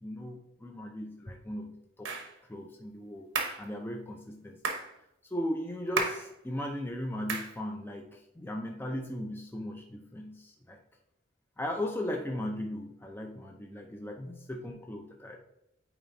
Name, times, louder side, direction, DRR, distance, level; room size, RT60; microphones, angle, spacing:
voice 1, 0.0-1.7 2.0-2.1 2.5-3.3 3.6-4.6 5.3-10.8 11.6-15.4, left 1 dB, 10° left, 2 dB, 0.5 m, -37 dB
sound 1, 2.0-2.3 3.4-3.6 4.6-4.9 6.0-6.3 7.3-7.5, right 4 dB, 75° right, 1.0 m, -32 dB
8.8 x 4.2 x 2.6 m, 0.81 s
head